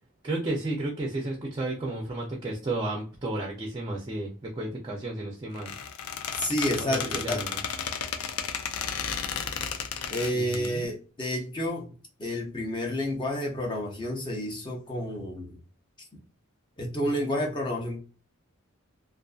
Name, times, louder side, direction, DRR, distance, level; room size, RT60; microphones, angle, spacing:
voice 1, 0.2-5.7 6.8-7.6 10.3-10.9, right 2 dB, 20° right, -1 dB, 0.4 m, -32 dB
Squeak, 5.5-10.7, left 7 dB, 90° left, 0.4 m, -33 dB
voice 2, 6.4-7.4 10.1-11.9 12.2-15.6 16.8-18.0, equal, 20° left, 0 dB, 0.6 m, -30 dB
2.5 x 2.4 x 2.3 m, 0.36 s
head